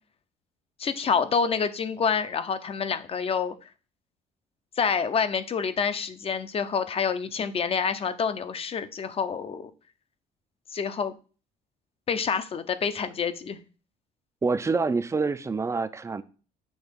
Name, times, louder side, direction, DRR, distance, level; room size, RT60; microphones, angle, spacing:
voice 1, 0.8-3.5 4.8-9.7 10.7-11.2 12.1-13.6, left 6 dB, 35° left, 11 dB, 0.6 m, -27 dB
voice 2, 14.4-16.2, right 4 dB, 15° right, 13 dB, 0.4 m, -26 dB
6.3 x 2.9 x 5.1 m, 0.36 s
cardioid pair, 110°, 17 cm